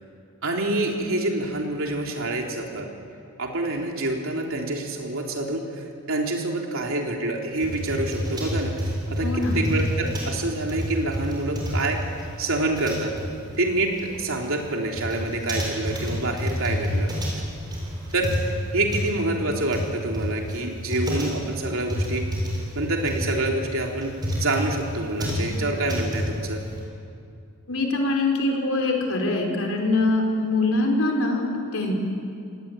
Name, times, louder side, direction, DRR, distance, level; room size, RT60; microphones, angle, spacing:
voice 1, 0.4-2.9 3.4-12.0 12.4-13.1 13.6-17.1 18.1-22.3 22.8-26.6, right 2 dB, 65° right, 1 dB, 3.6 m, -27 dB
sound 1, 7.6-26.8, equal, 20° right, 7.1 m, -29 dB
voice 2, 9.2-9.6 27.7-31.9, left 2 dB, 70° left, 1 dB, 4.8 m, -23 dB
26.5 x 19.5 x 9.1 m, 2.4 s
head